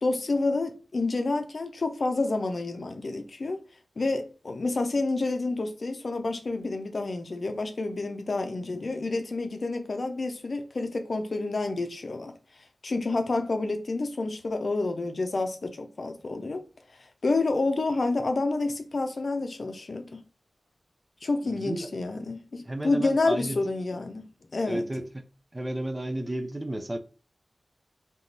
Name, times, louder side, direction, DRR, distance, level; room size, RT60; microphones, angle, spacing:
voice 1, 0.0-3.6 4.0-12.3 12.8-16.6 17.2-20.2 21.2-24.2 24.5-24.9, left 3 dB, 60° left, 0.7 m, -29 dB
voice 2, 21.4-21.9 22.7-23.6 24.6-25.2 25.5-27.0, right 1 dB, 25° right, 0.6 m, -32 dB
3.7 x 2.9 x 4.0 m
wide cardioid pair, 90°, 0 cm